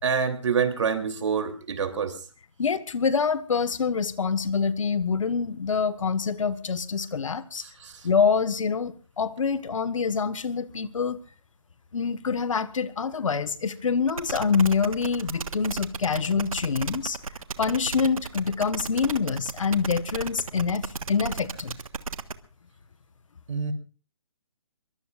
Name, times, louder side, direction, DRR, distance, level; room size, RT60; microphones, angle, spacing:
voice 1, 0.0-2.2 7.6-8.1 23.5-23.7, right 6 dB, 60° right, 3.1 m, -27 dB
voice 2, 2.6-7.6 8.0-11.2 11.9-17.2 17.6-21.7, left 5 dB, 70° left, 1.5 m, -26 dB
sound 1, 14.1-22.3, right 5 dB, 85° right, 1.4 m, -35 dB
23.0 x 22.5 x 2.5 m
hypercardioid pair, 155°, 17 cm